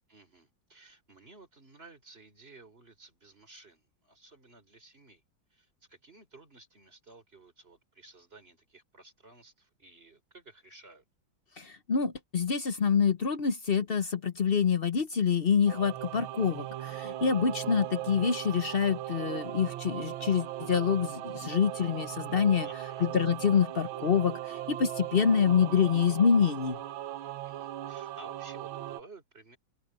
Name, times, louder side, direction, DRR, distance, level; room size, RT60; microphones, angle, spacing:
voice 1, 0.1-5.2 5.5-11.0 22.6-23.1 27.4-29.6, right 2 dB, 25° right, 5.0 m, -54 dB
voice 2, 11.6-22.7 23.0-26.8, left 6 dB, 60° left, 0.6 m, -26 dB
Singing / Musical instrument, 15.7-29.0, right 13 dB, 75° right, 1.5 m, -38 dB
omnidirectional pair, 2.3 m